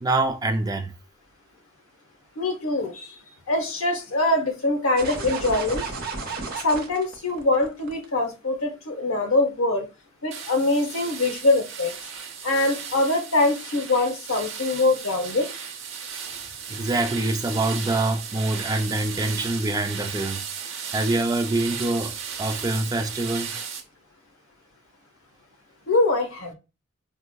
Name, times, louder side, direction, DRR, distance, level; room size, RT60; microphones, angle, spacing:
voice 1, 0.0-0.9 16.7-20.4 20.9-22.1 22.4-23.5, right 2 dB, 20° right, 0.3 m, -25 dB
voice 2, 2.4-3.1 3.5-5.8 6.6-9.9 10.2-11.9 12.4-15.5 25.9-26.5, left 2 dB, 80° left, 0.8 m, -23 dB
sound 1, 5.0-8.1, right 4 dB, 45° right, 0.7 m, -32 dB
sound 2, 10.3-23.8, right 7 dB, 70° right, 0.9 m, -35 dB
4.6 x 2.0 x 2.2 m
head